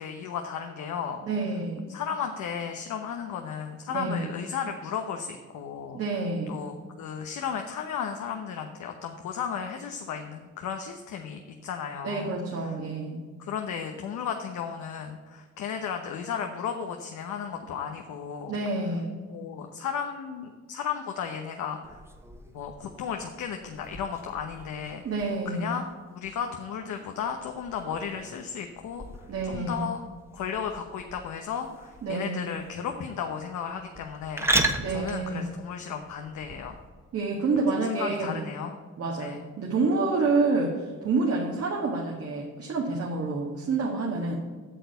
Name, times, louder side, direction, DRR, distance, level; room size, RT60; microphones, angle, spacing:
voice 1, 0.0-1.2 1.9-6.0 6.5-12.4 12.6-12.7 13.4-18.6 19.3-22.0 22.5-25.0 25.4-29.0 29.4-30.0 30.3-36.8 37.9-38.8 39.2-39.4, left 7 dB, 75° left, 4 dB, 1.1 m, -34 dB
voice 2, 1.2-1.9 3.9-4.3 5.9-6.6 12.0-13.2 18.5-19.2 25.0-25.8 29.3-29.9 32.0-32.5 34.8-35.5 37.1-38.4 39.0-44.3, right 3 dB, 50° right, -2 dB, 1.9 m, -28 dB
sound 1, 21.8-36.9, right 2 dB, 10° right, 1.3 m, -36 dB
8.9 x 6.7 x 8.0 m, 1.5 s
cardioid pair, 90°, 30 cm